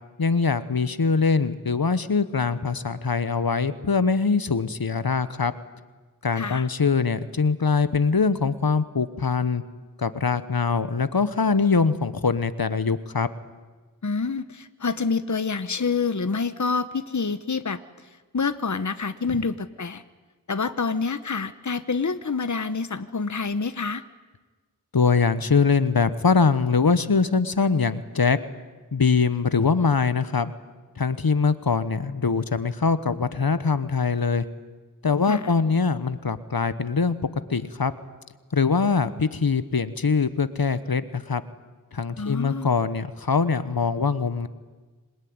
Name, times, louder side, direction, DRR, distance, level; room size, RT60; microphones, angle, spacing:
voice 1, 0.2-5.5 6.2-9.6 10.0-13.3 24.9-28.4 28.9-30.5 31.0-34.4 35.0-37.2 37.5-37.9 38.5-41.4 41.9-44.5, left 5 dB, 80° left, 13 dB, 1.1 m, -23 dB
voice 2, 6.4-6.7 14.0-17.8 18.3-20.0 20.5-24.0 35.3-35.5 42.2-42.7, left 4 dB, 55° left, 12 dB, 1.0 m, -27 dB
26.5 x 20.5 x 9.6 m, 1.3 s
wide cardioid pair, 45°, 35 cm